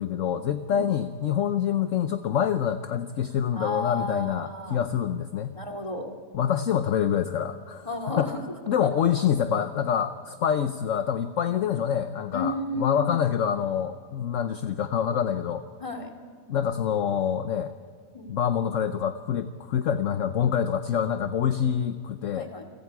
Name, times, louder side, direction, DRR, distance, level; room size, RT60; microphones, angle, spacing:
voice 1, 0.0-5.6 6.3-7.9 8.2-8.3 8.7-15.6 16.5-17.7 18.3-22.5, left 8 dB, 55° left, 9 dB, 1.0 m, -26 dB
voice 2, 3.5-4.8 5.5-6.1 7.8-8.4 8.8-8.9 11.6-11.8 12.3-13.3 15.8-16.1 18.1-18.4 22.3-22.6, left 2 dB, 20° left, 2 dB, 2.5 m, -33 dB
29.0 x 25.5 x 4.8 m, 2.1 s
omnidirectional pair, 1.8 m